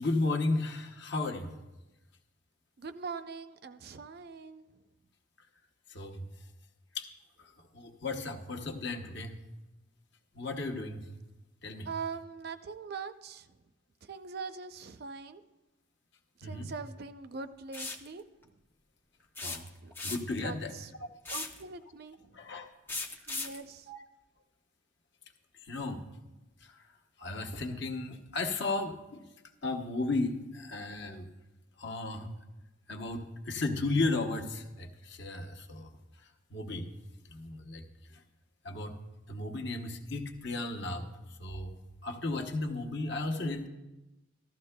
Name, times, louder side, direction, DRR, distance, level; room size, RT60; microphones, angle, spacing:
voice 1, 0.0-1.5 5.9-6.2 6.9-7.1 7.7-9.4 10.3-11.1 11.6-11.9 16.4-16.7 19.4-19.7 20.0-20.7 22.3-22.7 23.9-24.0 25.6-26.0 26.6-26.7 27.2-29.2 29.6-31.3 31.8-32.3 32.9-35.9 36.5-36.9 37.3-37.8 38.6-38.9 39.3-41.1 41.4-41.8 42.0-43.7, left 2 dB, 55° left, 4 dB, 1.0 m, -34 dB
voice 2, 2.8-4.7 11.9-13.5 14.1-15.4 16.4-18.2 19.8-19.9 20.4-20.9 21.3-22.2 23.3-23.9, right 5 dB, 50° right, 10 dB, 0.5 m, -42 dB
sound 1, 17.7-18.1 19.4-20.4 21.2-21.6 22.9-23.6, left 3 dB, 10° left, 0.6 m, -37 dB
15.5 x 13.0 x 2.2 m, 1.0 s
head